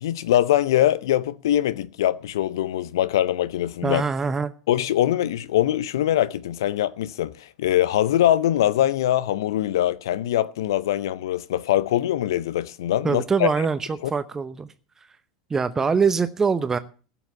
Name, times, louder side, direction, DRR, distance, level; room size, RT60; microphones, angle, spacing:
voice 1, 0.0-4.0 4.7-13.7 14.0-14.1, left 12 dB, 70° left, 0.5 m, -23 dB
voice 2, 3.8-4.5 13.0-14.7 15.5-16.8, right 5 dB, 20° right, 0.8 m, -23 dB
15.5 x 7.0 x 7.2 m
figure-of-eight pair, 80°, 2 cm